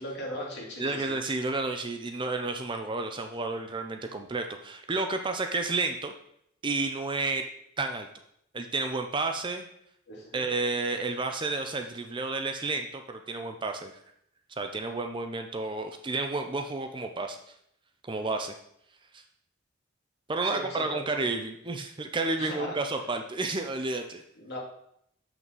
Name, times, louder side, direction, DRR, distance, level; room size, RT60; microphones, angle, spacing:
voice 1, 0.0-1.1 10.1-10.4 20.4-21.3 22.4-22.7 24.4-24.6, equal, 55° left, -3 dB, 2.3 m, -38 dB
voice 2, 0.8-6.1 6.6-7.4 7.8-8.1 8.5-9.7 10.3-13.9 14.5-17.4 18.0-18.6 19.1-19.2 20.3-24.2, right 3 dB, 25° right, 5 dB, 0.5 m, -31 dB
7.2 x 5.9 x 4.0 m, 0.72 s
head